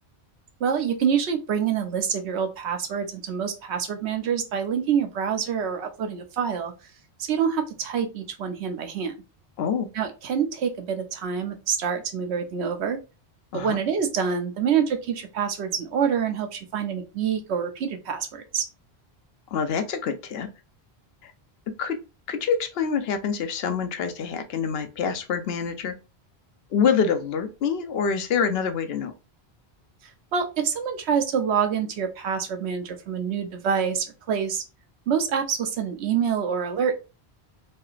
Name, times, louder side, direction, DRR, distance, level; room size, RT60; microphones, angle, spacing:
voice 1, 0.6-6.7 7.2-9.1 9.9-13.0 13.5-18.6 30.3-34.6 35.1-36.9, right 7 dB, 85° right, 5 dB, 1.0 m, -26 dB
voice 2, 9.6-9.9 13.5-13.8 19.5-20.5 21.2-21.3 21.8-22.0 22.3-25.9 26.7-29.1, left 6 dB, 70° left, 8 dB, 0.8 m, -26 dB
3.2 x 2.8 x 2.4 m, 0.29 s
omnidirectional pair, 1.1 m